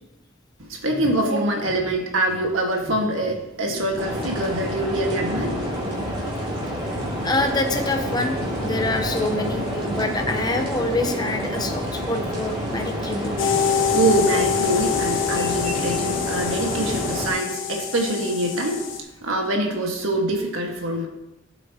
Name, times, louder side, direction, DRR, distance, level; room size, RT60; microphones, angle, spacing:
voice 1, 0.6-5.7 13.6-21.1, right 1 dB, 80° right, 1 dB, 1.8 m, -24 dB
sound 1, 4.0-17.3, equal, 25° right, 2.7 m, -28 dB
voice 2, 7.2-13.3 15.4-15.5, left 2 dB, 20° left, 5 dB, 0.9 m, -26 dB
sound 2, 13.4-19.0, left 7 dB, 75° left, 1.2 m, -25 dB
14.5 x 8.2 x 3.0 m, 0.95 s
head